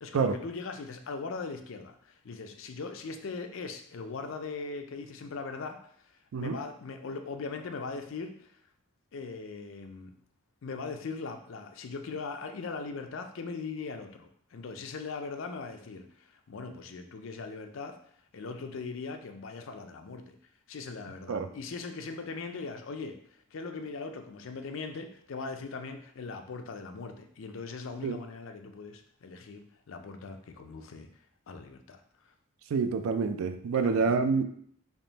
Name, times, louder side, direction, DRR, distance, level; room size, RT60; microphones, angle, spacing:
voice 1, 0.0-5.8 6.4-8.4 9.1-10.1 10.6-18.0 18.3-20.4 20.7-23.2 23.5-31.1 31.5-32.0 33.7-34.1, left 4 dB, 70° left, 6 dB, 0.4 m, -40 dB
voice 2, 32.7-34.4, right 5 dB, 85° right, 8 dB, 0.4 m, -27 dB
3.5 x 2.5 x 3.9 m, 0.63 s
head